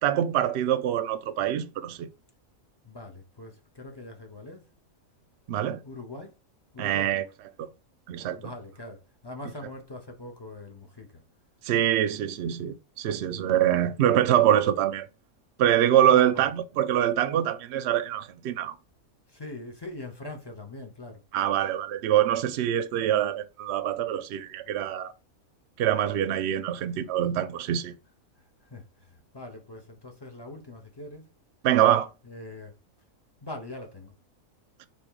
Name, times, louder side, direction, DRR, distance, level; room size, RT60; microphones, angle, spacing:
voice 1, 0.0-2.1 5.5-5.8 6.8-7.2 7.6-7.7 8.1-8.5 11.6-15.1 15.6-18.7 21.3-25.1 25.8-28.0 31.6-32.1 34.8-34.9, right 11 dB, 65° right, 0.7 m, -24 dB
voice 2, 2.8-4.7 5.8-6.3 6.7-7.2 8.4-11.2 16.1-16.5 19.3-21.2 28.4-31.3 32.2-32.7 33.4-34.1, left 2 dB, 25° left, 0.5 m, -42 dB
3.5 x 2.9 x 4.5 m
omnidirectional pair, 1.4 m